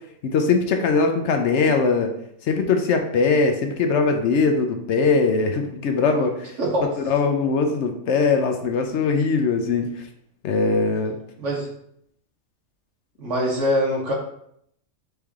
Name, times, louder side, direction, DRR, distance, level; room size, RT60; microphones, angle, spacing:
voice 1, 0.2-2.1 2.5-6.5 7.0-9.9 10.4-11.2, left 4 dB, 70° left, 5 dB, 0.8 m, -21 dB
voice 2, 6.6-6.9 11.4-11.7 13.2-14.1, equal, 65° right, -2 dB, 1.5 m, -23 dB
4.3 x 3.4 x 3.5 m, 0.71 s
omnidirectional pair, 1.4 m